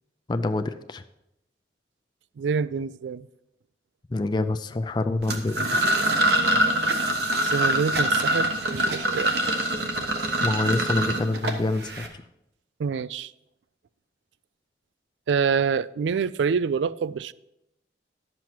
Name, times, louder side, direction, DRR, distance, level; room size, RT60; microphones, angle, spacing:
voice 1, 0.3-1.0 4.1-5.7 10.4-12.2, left 2 dB, 25° left, 0.3 m, -26 dB
voice 2, 2.4-3.3 7.4-9.4 12.8-13.3 15.3-17.3, right 6 dB, 80° right, 0.4 m, -26 dB
sound 1, 5.2-12.1, right 1 dB, 65° right, 1.2 m, -24 dB
11.5 x 7.5 x 4.5 m
head